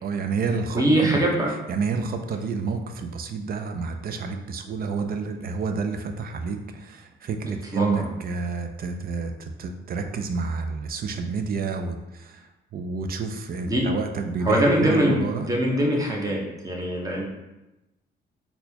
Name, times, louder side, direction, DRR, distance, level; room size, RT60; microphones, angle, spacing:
voice 1, 0.0-1.2 1.7-12.5 12.7-15.5, right 4 dB, 50° right, 6 dB, 0.4 m, -29 dB
voice 2, 0.7-1.5 7.7-8.1 13.7-13.9 14.4-17.2, right 1 dB, 15° right, -2 dB, 0.9 m, -22 dB
4.0 x 2.3 x 2.8 m, 0.98 s
cardioid pair, 90°, 20 cm